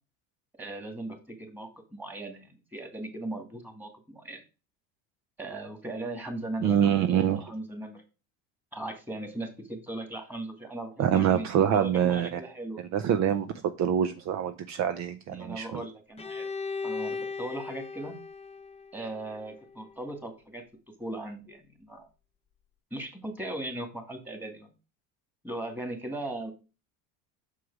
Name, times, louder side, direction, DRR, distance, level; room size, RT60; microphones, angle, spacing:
voice 1, 0.6-4.4 5.4-6.9 7.4-8.0 8.7-12.8 15.3-16.5 16.8-18.2 18.9-20.6 21.0-22.1 22.9-24.7 25.4-26.5, right 2 dB, 5° right, 4 dB, 2.3 m, -38 dB
voice 2, 6.6-7.5 11.0-12.4 12.9-15.8, right 9 dB, 50° right, 10 dB, 0.7 m, -25 dB
Bowed string instrument, 16.2-20.0, left 4 dB, 15° left, 0.9 m, -37 dB
6.6 x 4.7 x 4.7 m, 0.31 s
supercardioid pair, 95°, 37 cm